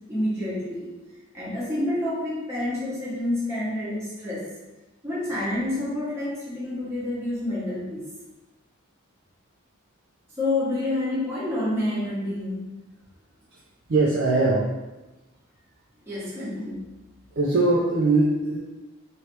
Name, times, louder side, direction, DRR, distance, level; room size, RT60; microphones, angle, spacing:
voice 1, 0.1-1.0 1.3-4.5 5.0-8.1 10.4-12.7 16.1-17.0, left 1 dB, 15° right, -10 dB, 0.9 m, -28 dB
voice 2, 13.9-14.7 17.3-18.6, right 2 dB, 60° right, -5 dB, 0.5 m, -21 dB
3.2 x 3.1 x 3.0 m, 1.1 s
head